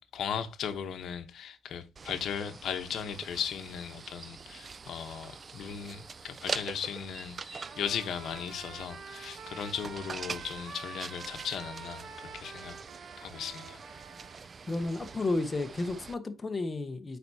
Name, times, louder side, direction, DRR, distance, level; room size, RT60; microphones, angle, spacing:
voice 1, 0.1-12.8 13.2-13.8, left 8 dB, 70° left, 0.8 m, -37 dB
sound 1, 2.0-16.1, right 5 dB, 35° right, 0.3 m, -44 dB
Trumpet, 7.6-14.4, right 5 dB, 60° right, 0.8 m, -47 dB
voice 2, 14.7-17.2, left 2 dB, 20° left, 0.7 m, -32 dB
9.0 x 4.3 x 2.7 m
cardioid pair, 125°, 0 cm